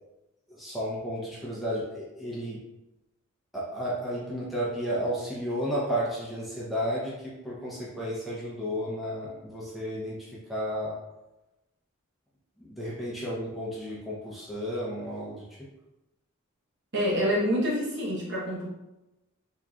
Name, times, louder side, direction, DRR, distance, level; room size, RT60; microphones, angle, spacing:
voice 1, 0.5-2.6 3.5-10.9 12.6-15.7, equal, ahead, -8 dB, 0.6 m, -33 dB
voice 2, 16.9-18.7, equal, 50° right, -5 dB, 1.0 m, -27 dB
3.7 x 2.9 x 2.3 m, 0.98 s
head